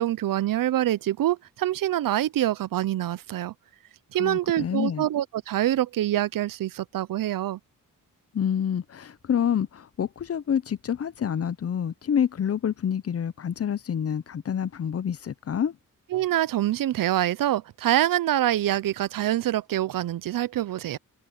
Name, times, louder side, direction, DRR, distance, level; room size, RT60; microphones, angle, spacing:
voice 1, 0.0-3.5 4.1-7.6 16.1-21.0, right 13 dB, 75° right, 0.6 m, -25 dB
voice 2, 4.2-5.0 8.3-15.8, left 8 dB, 45° left, 0.6 m, -27 dB
cardioid pair, 80°, 33 cm